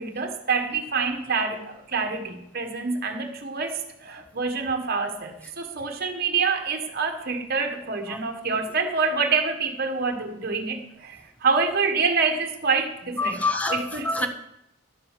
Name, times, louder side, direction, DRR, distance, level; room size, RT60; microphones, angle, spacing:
voice 1, 0.0-13.4 13.7-14.1, right 4 dB, 50° right, 4 dB, 1.5 m, -26 dB
voice 2, 13.2-14.3, left 2 dB, 5° left, 7 dB, 1.1 m, -26 dB
11.5 x 7.7 x 7.5 m, 0.82 s
head